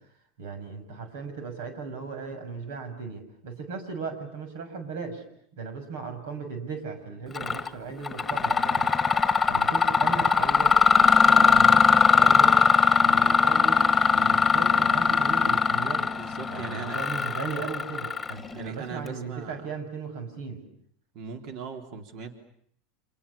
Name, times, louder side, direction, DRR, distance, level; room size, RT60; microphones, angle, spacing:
voice 1, 0.4-5.2 5.5-8.9 9.5-12.6 13.0-13.8 14.1-16.1 16.5-20.6, right 5 dB, 80° right, 8 dB, 7.0 m, -37 dB
Mechanisms, 7.3-7.7 8.0-18.6, left 5 dB, 15° left, 1.6 m, -21 dB
voice 2, 16.1-17.0 18.5-19.6 21.1-22.3, right 5 dB, 55° right, 5 dB, 3.8 m, -39 dB
29.0 x 27.0 x 7.1 m, 0.67 s
supercardioid pair, 125°, 0 cm